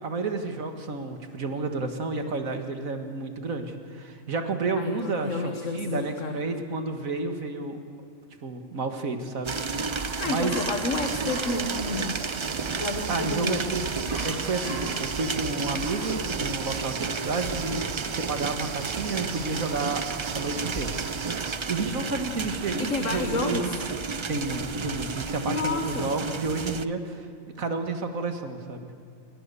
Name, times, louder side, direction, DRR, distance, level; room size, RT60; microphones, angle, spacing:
voice 1, 0.0-7.8 8.4-10.6 13.1-13.8 14.2-20.0 20.3-20.9 21.7-23.7 24.3-27.3 27.6-28.9, right 3 dB, 80° right, 6 dB, 2.2 m, -31 dB
voice 2, 4.8-6.4 10.2-12.3 12.8-13.6 22.8-23.8 25.5-26.1, left 3 dB, 65° left, 4 dB, 1.9 m, -30 dB
sound 1, 9.4-26.9, right 4 dB, 40° right, 0.4 m, -32 dB
sound 2, 9.6-22.1, equal, 20° right, 6.1 m, -48 dB
sound 3, 11.0-21.6, right 6 dB, 55° right, 1.2 m, -38 dB
27.5 x 21.0 x 6.9 m, 2.4 s
omnidirectional pair, 1.4 m